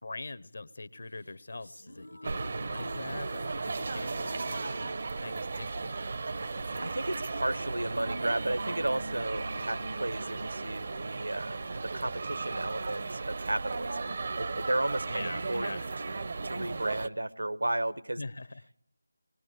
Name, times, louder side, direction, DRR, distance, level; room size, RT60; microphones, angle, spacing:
voice 1, 0.0-4.9 5.2-5.9 15.1-15.9 18.2-18.7, left 2 dB, 55° left, 14 dB, 1.1 m, -43 dB
sound 1, 1.1-11.5, equal, 90° left, 1.5 m, -47 dB
sound 2, 2.2-17.1, right 3 dB, 40° right, 0.8 m, -36 dB
voice 2, 6.8-15.7 16.4-18.2, right 1 dB, 75° right, 12 dB, 1.3 m, -33 dB
22.0 x 20.5 x 8.2 m, 0.72 s
figure-of-eight pair, 160°, 0 cm